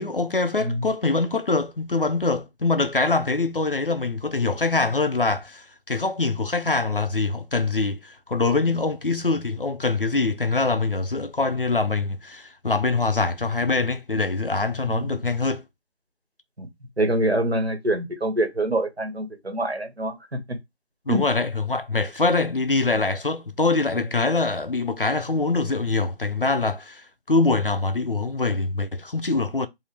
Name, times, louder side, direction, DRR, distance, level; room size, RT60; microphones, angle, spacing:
voice 1, 0.0-15.6 21.1-29.7, left 3 dB, 55° left, 0.5 m, -24 dB
voice 2, 17.0-20.4 21.1-21.2, right 1 dB, 70° right, 1.8 m, -25 dB
4.8 x 2.6 x 3.3 m
figure-of-eight pair, 180°, 32 cm